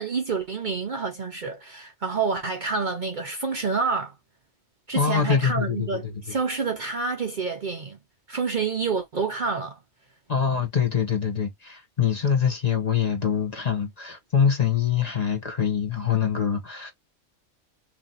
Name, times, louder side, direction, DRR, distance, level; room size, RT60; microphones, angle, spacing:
voice 1, 0.0-4.1 4.9-8.0 8.3-9.8, right 4 dB, 50° right, 0.7 m, -28 dB
voice 2, 4.9-6.3 10.3-16.9, left 7 dB, 35° left, 1.1 m, -24 dB
2.9 x 2.8 x 3.9 m
omnidirectional pair, 1.2 m